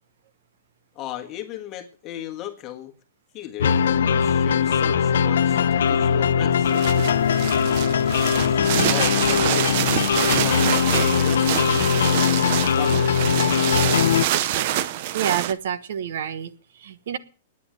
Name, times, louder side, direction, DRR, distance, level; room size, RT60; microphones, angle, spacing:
voice 1, 0.9-2.9 3.3-6.8 8.3-10.7 10.9-12.5 12.7-13.1, left 12 dB, 20° left, 1.5 m, -36 dB
sound 1, 3.6-14.3, left 7 dB, 85° left, 0.8 m, -20 dB
sound 2, 6.6-15.5, right 12 dB, 35° right, 0.6 m, -26 dB
voice 2, 15.1-17.2, right 9 dB, 55° right, 1.1 m, -28 dB
9.7 x 9.7 x 9.3 m
supercardioid pair, 180°, 0 cm